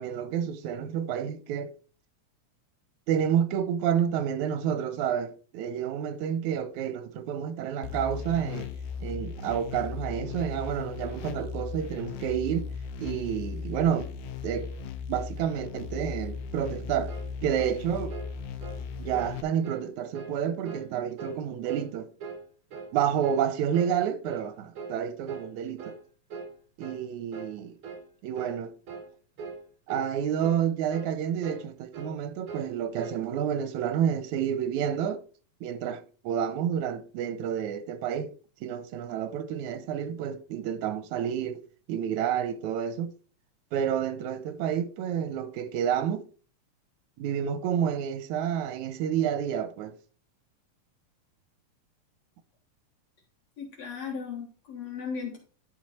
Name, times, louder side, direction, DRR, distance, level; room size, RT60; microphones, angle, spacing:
voice 1, 0.0-1.7 3.1-8.7 9.0-12.7 13.0-14.1 14.4-14.7 15.1-17.1 17.4-18.2 19.0-22.1 22.9-26.0 26.8-27.8 28.2-28.7 29.9-35.2 35.6-38.3 38.6-41.6 41.9-43.1 43.7-46.3 47.2-50.0, right 9 dB, 85° right, 2.2 m, -29 dB
sound 1, 7.8-19.4, left 6 dB, 85° left, 2.4 m, -37 dB
sound 2, 17.1-17.3 17.6-17.8 18.1-18.3 18.6-18.8 19.1-19.4 19.6-19.9 20.1-20.4 20.6-20.9 21.2-21.4 21.7-21.9 22.2-22.4 22.7-22.9 23.2-23.5 23.7-24.0 24.2-24.5 24.7-25.0 25.3-25.5 25.8-26.0 26.3-26.5 26.8-27.0 27.3-27.5 27.8-28.1 28.3-28.6 28.9-29.1 29.4-29.6 29.9-30.1 30.4-30.6 30.9-31.1 31.4-31.7 31.9-32.2 32.5-32.7 33.0-33.2, right 4 dB, 50° right, 2.4 m, -41 dB
voice 2, 53.6-55.4, left 6 dB, 65° left, 2.5 m, -36 dB
12.0 x 4.9 x 4.2 m
omnidirectional pair, 3.4 m